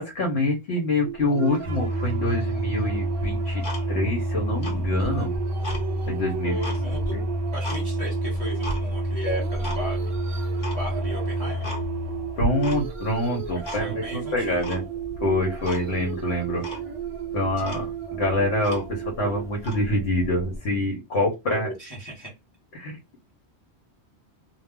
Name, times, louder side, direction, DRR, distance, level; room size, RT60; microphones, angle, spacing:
voice 1, 0.0-3.6 3.9-5.3 6.0-6.5 7.1-7.3 12.4-14.8 15.2-16.6 17.3-21.7 22.7-23.0, left 1 dB, 75° left, -1 dB, 1.1 m, -26 dB
sound 1, 1.0-20.6, right 10 dB, 50° right, 0.3 m, -35 dB
sound 2, 1.6-20.6, equal, 35° right, 0.8 m, -31 dB
Tick-tock, 3.2-4.2 4.5-5.8 6.3-7.8 8.2-8.8 9.3-9.8 10.1-10.2 10.6-10.8 11.2-11.3 11.6-12.1 12.4-13.0 13.3-14.1 14.6-15.2 15.6-15.8 16.2-16.3 16.6-16.9 17.3-17.4 17.6-19.1 19.6-19.8, right 1 dB, 50° left, 1.0 m, -35 dB
voice 2, 6.4-7.2 7.5-11.7 13.6-14.8 21.5-22.3, right 1 dB, 25° left, -2 dB, 0.9 m, -35 dB
2.3 x 2.2 x 3.5 m, 0.23 s
omnidirectional pair, 1.1 m